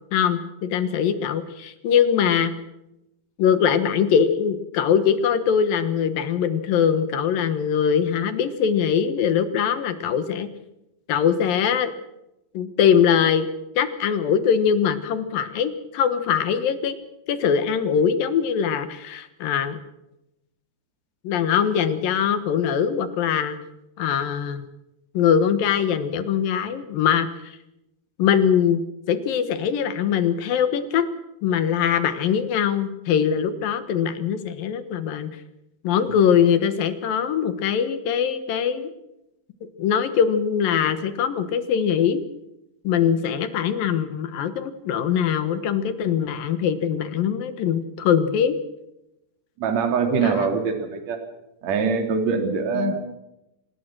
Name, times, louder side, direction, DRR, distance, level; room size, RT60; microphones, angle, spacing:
voice 1, 0.1-2.5 3.4-10.5 11.1-11.9 12.5-13.5 13.8-16.9 17.3-19.8 21.2-23.6 24.0-24.7 25.1-27.3 28.2-28.8 29.1-31.1 31.4-35.3 35.8-38.9 39.8-42.2 42.8-48.6 50.2-50.5 52.7-52.9, left 8 dB, 65° left, 11 dB, 2.6 m, -22 dB
voice 2, 49.6-51.2 51.6-53.0, right 5 dB, 40° right, 5 dB, 3.6 m, -23 dB
26.0 x 19.0 x 6.1 m, 0.89 s
omnidirectional pair, 5.1 m